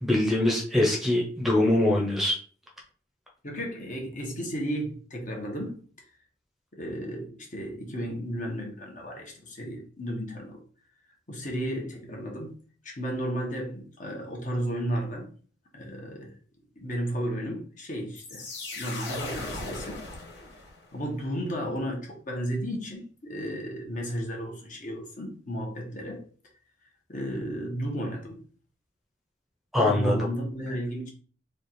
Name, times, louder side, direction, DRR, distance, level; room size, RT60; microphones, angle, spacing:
voice 1, 0.0-2.3 29.7-30.1, left 1 dB, ahead, 0.8 m, -23 dB
voice 2, 3.4-5.8 6.7-10.6 11.3-12.5 12.8-15.3 15.7-16.4 16.8-18.4 18.7-20.0 20.9-26.2 27.1-28.4 29.8-31.1, equal, 45° left, 1.1 m, -33 dB
sound 1, 18.2-21.0, left 2 dB, 65° left, 1.4 m, -37 dB
3.3 x 2.5 x 4.1 m
head